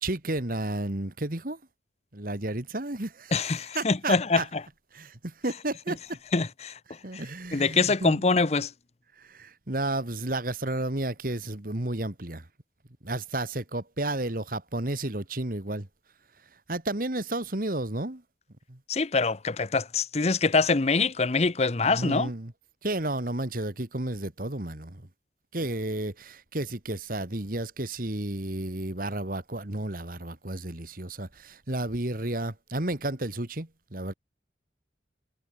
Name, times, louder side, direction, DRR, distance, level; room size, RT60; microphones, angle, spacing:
voice 1, 0.0-1.6 2.1-3.3 3.7-4.4 4.9-6.2 7.0-8.2 9.2-12.5 13.0-15.9 16.7-18.2 18.7-18.8 21.8-22.5 22.8-25.1 25.5-34.1, right 2 dB, 50° right, 2.0 m, -32 dB
voice 2, 3.3-4.6 6.3-6.8 7.1-7.2 7.5-8.7 18.9-22.3, left 4 dB, 35° left, 0.7 m, -24 dB
head